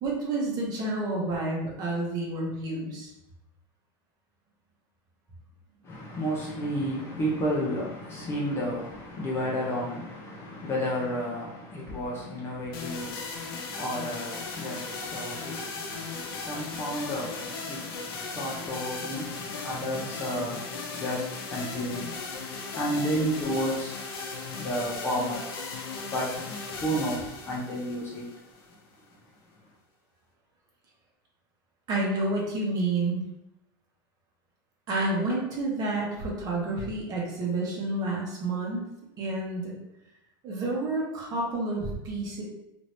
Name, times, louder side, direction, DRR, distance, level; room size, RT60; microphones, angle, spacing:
voice 1, 0.0-3.1 31.9-33.2 34.9-38.8 39.2-39.8 40.4-42.4, right 2 dB, 30° right, -2 dB, 0.9 m, -29 dB
voice 2, 5.8-22.2 22.7-24.0 24.5-25.5 26.1-28.3, equal, 20° left, -5 dB, 0.5 m, -32 dB
sound 1, 12.7-28.8, left 4 dB, 80° left, 0.7 m, -37 dB
2.9 x 2.6 x 3.1 m, 0.88 s
supercardioid pair, 155°, 12 cm